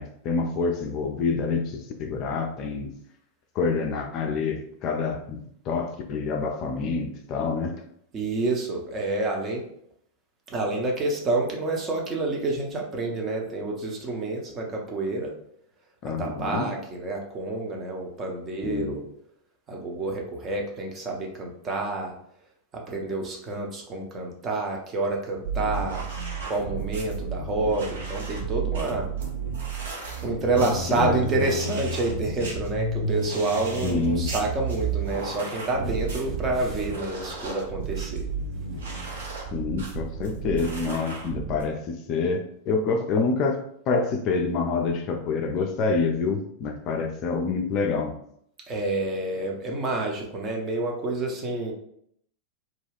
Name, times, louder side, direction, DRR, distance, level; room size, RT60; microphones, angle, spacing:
voice 1, 0.0-2.9 3.6-7.8 16.0-16.7 18.6-19.0 30.6-31.2 33.8-34.3 39.5-48.2, left 4 dB, 40° left, 3 dB, 0.4 m, -27 dB
voice 2, 8.1-9.6 10.5-15.3 16.2-19.0 19.7-22.1 22.9-26.1 26.5-29.1 30.2-38.2 48.7-51.7, right 2 dB, 25° right, 0 dB, 0.7 m, -28 dB
sound 1, 25.4-41.6, right 4 dB, 65° right, 0.6 m, -32 dB
2.4 x 2.2 x 3.3 m, 0.70 s
figure-of-eight pair, 90°, 0 cm